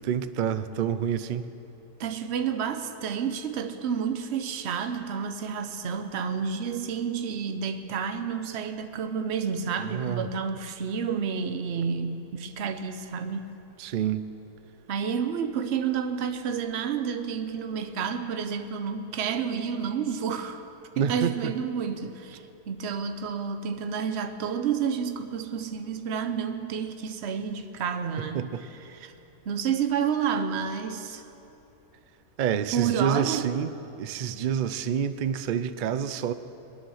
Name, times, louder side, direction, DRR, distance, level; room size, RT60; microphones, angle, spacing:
voice 1, 0.0-1.4 9.9-10.3 13.8-14.3 21.0-21.5 28.3-28.6 32.4-33.7 34.0-36.3, right 8 dB, 85° right, 11 dB, 0.4 m, -28 dB
voice 2, 2.0-13.5 14.9-20.6 21.0-28.5 28.9-29.1 29.5-31.2 32.7-33.5, right 7 dB, 50° right, 8 dB, 1.0 m, -30 dB
22.5 x 9.1 x 6.4 m, 2.9 s
omnidirectional pair, 1.6 m